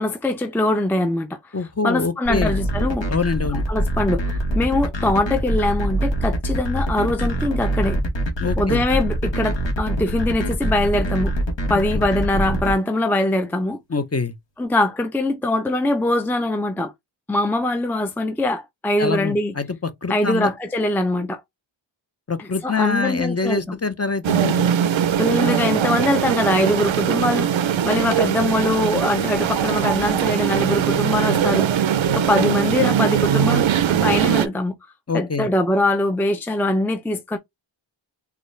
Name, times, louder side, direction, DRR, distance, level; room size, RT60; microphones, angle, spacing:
voice 1, 0.0-1.4 1.8-3.1 3.7-4.2 4.6-8.0 8.6-11.3 11.7-13.8 14.6-16.9 17.3-19.5 20.1-21.4 22.4-23.6 25.2-34.8 35.1-37.4, left 1 dB, 5° left, 0.5 m, -22 dB
voice 2, 1.5-2.5 3.1-3.6 8.4-8.8 11.9-12.0 13.9-14.4 19.0-20.5 22.3-24.7 35.1-35.5, left 4 dB, 30° left, 0.8 m, -24 dB
sound 1, 2.3-12.7, right 1 dB, 65° left, 1.4 m, -24 dB
sound 2, 24.2-34.5, right 9 dB, 75° right, 0.5 m, -21 dB
3.8 x 2.3 x 3.1 m
wide cardioid pair, 40°, 47 cm